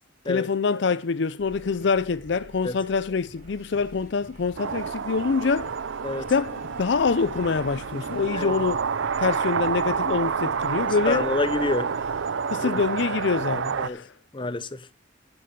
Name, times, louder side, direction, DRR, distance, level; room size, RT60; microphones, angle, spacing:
voice 1, 0.2-5.7 6.3-8.8 9.2-11.3 12.5-14.1, left 5 dB, 65° left, 0.5 m, -25 dB
sound 1, 1.4-12.3, right 1 dB, 35° right, 6.3 m, -48 dB
sound 2, 4.6-13.9, right 6 dB, 80° right, 0.5 m, -29 dB
voice 2, 11.1-11.9 12.6-12.8 13.8-14.0 14.3-14.9, left 2 dB, 25° left, 0.8 m, -27 dB
10.5 x 9.0 x 5.3 m
head